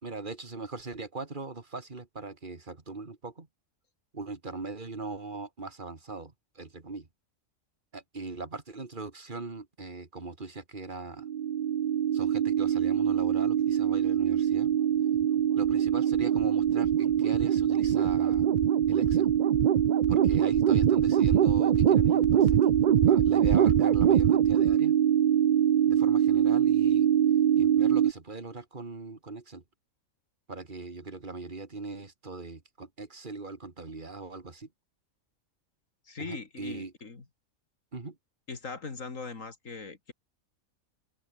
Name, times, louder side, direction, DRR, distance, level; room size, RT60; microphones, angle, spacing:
voice 1, 0.0-3.5 4.1-7.1 7.9-11.3 12.1-14.7 15.5-18.5 18.9-19.3 20.1-22.7 23.1-25.0 25.9-27.1 27.6-29.6 30.5-34.7 36.2-36.9 37.9-38.2, right 3 dB, 35° right, 2.3 m, -40 dB
sound 1, 11.2-28.1, right 9 dB, 60° right, 0.4 m, -23 dB
voice 2, 36.1-37.2 38.5-40.1, left 4 dB, 65° left, 3.0 m, -40 dB
omnidirectional pair, 1.4 m